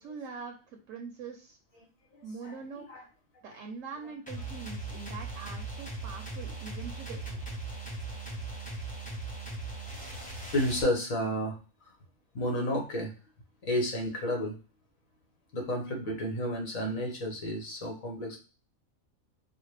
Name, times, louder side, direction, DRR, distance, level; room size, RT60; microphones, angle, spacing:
voice 1, 0.0-1.6 2.2-3.1 3.4-7.2, right 5 dB, 70° right, 3 dB, 1.0 m, -43 dB
sound 1, 4.3-10.8, right 3 dB, 5° left, 0.7 m, -39 dB
voice 2, 10.4-11.6 12.3-13.1 13.6-14.5 15.5-18.4, equal, 75° left, 0 dB, 1.6 m, -31 dB
5.0 x 2.1 x 3.2 m, 0.34 s
omnidirectional pair, 1.4 m